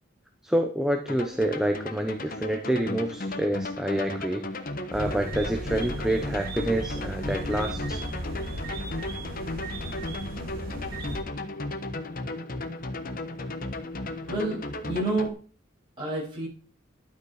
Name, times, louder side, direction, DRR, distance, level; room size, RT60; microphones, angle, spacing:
voice 1, 0.4-4.5 4.9-8.0, right 1 dB, 5° right, 4 dB, 0.9 m, -27 dB
sound 1, 1.1-15.3, left 2 dB, 45° left, 1.2 m, -35 dB
sound 2, 4.9-11.2, right 1 dB, 45° right, 3.0 m, -36 dB
voice 2, 14.3-15.4 16.0-16.5, right 2 dB, 25° right, -5 dB, 8.0 m, -29 dB
12.5 x 9.0 x 4.9 m, 0.40 s
head